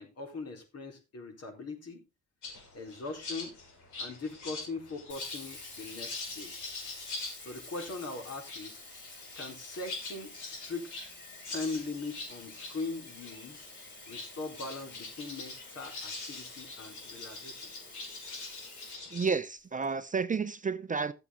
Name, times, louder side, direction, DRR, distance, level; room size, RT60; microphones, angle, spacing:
voice 1, 0.0-2.0 2.7-3.6 4.0-6.5 7.4-8.8 9.3-11.0 11.5-13.7 14.1-17.7, left 3 dB, 55° left, 4.4 m, -40 dB
sound 1, 2.4-19.3, left 3 dB, 80° left, 5.6 m, -44 dB
Sink (filling or washing), 5.1-19.8, left 2 dB, 40° left, 5.1 m, -50 dB
voice 2, 19.1-21.1, right 5 dB, 25° right, 0.7 m, -31 dB
13.0 x 8.2 x 3.9 m
cardioid pair, 90°, 30 cm